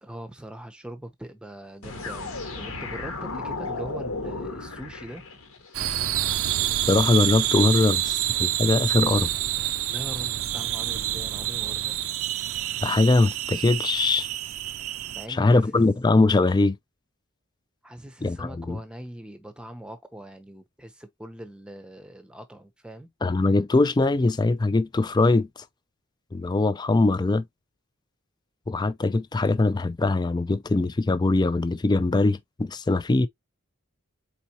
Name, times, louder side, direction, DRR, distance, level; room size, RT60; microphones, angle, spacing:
voice 1, 0.0-5.3 9.9-11.9 15.1-15.8 17.8-23.1, right 1 dB, 5° right, 0.8 m, -41 dB
sound 1, 1.8-5.8, left 3 dB, 80° left, 1.4 m, -34 dB
sound 2, 5.7-15.3, right 12 dB, 75° right, 0.5 m, -27 dB
voice 2, 6.9-9.3 12.8-14.3 15.3-16.8 18.2-18.8 23.2-25.5 26.3-27.4 28.7-33.3, left 2 dB, 20° left, 0.3 m, -22 dB
4.4 x 4.1 x 2.8 m
head